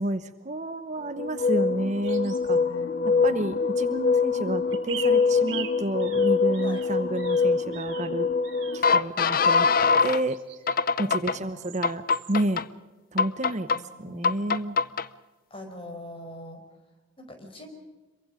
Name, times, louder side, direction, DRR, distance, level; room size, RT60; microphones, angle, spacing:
voice 1, 0.0-2.6 3.2-8.3 8.7-9.7 10.0-10.4 11.0-12.0 12.3-12.6 13.1-13.7 14.0-14.8, right 1 dB, 35° right, 11 dB, 0.9 m, -30 dB
sound 1, 1.2-10.2 10.7-11.4 11.8-12.6 13.2-13.8 14.2-15.1, left 4 dB, 45° left, 0.6 m, -24 dB
sound 2, 2.0-2.6 4.7-8.1 8.4-8.9 9.6-10.8 11.6-11.8 12.1-12.4, right 8 dB, 65° right, 3.1 m, -42 dB
voice 2, 2.5-3.4 6.6-6.8 11.1-11.7 13.7-14.4 15.5-16.6 17.2-17.7, left 1 dB, 30° left, 4 dB, 4.6 m, -43 dB
27.0 x 23.5 x 5.1 m, 1.2 s
head